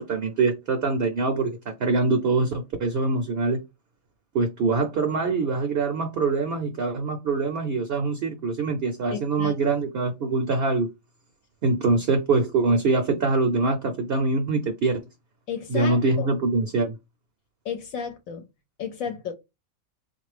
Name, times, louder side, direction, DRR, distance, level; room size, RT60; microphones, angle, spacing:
voice 1, 0.0-3.6 4.3-10.9 11.6-15.0 15.7-17.0, right 3 dB, 60° right, 0.7 m, -24 dB
voice 2, 9.1-9.5 15.5-16.3 17.6-18.4 18.8-19.3, left 7 dB, 75° left, 1.0 m, -32 dB
3.8 x 2.5 x 3.3 m
omnidirectional pair, 1.5 m